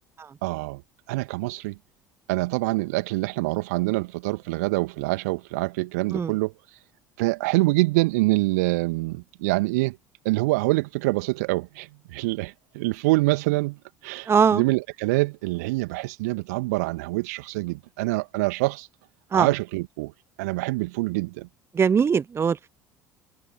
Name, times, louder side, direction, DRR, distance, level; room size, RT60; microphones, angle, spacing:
voice 1, 0.4-0.8 1.1-1.8 2.3-6.5 7.2-10.0 10.2-13.8 14.0-18.9 19.3-20.1 20.4-21.5, right 23 dB, 65° right, 2.6 m, -25 dB
voice 2, 14.3-14.6 19.3-19.5 21.7-22.7, right 6 dB, 25° right, 0.8 m, -21 dB
figure-of-eight pair, 60°, 9 cm